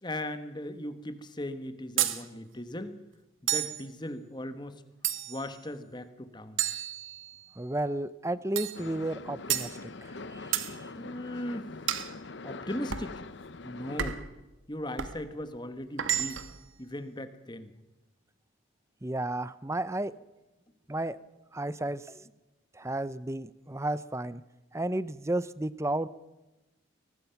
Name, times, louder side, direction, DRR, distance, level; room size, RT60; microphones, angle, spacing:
voice 1, 0.0-3.0 3.4-4.8 5.3-6.6 10.9-11.7 12.4-13.2 13.6-14.2 14.7-16.5 16.8-17.7, left 1 dB, 20° left, 10 dB, 1.3 m, -38 dB
sound 1, 2.0-2.2 3.5-3.8 5.0-5.5 6.6-7.5 8.6-8.8 9.5-9.7 10.5-10.7 11.9-12.1 12.9-13.1 14.0-14.3 15.0-15.2 16.0-16.6, right 11 dB, 80° right, 1.5 m, -31 dB
voice 2, 7.6-10.9 19.0-20.1 20.9-21.2 21.5-22.2 22.7-24.4 24.7-26.1, right 1 dB, 15° right, 17 dB, 0.6 m, -33 dB
sound 2, 8.7-14.0, left 3 dB, 60° left, 0.8 m, -43 dB
23.0 x 20.0 x 5.8 m, 1.1 s
head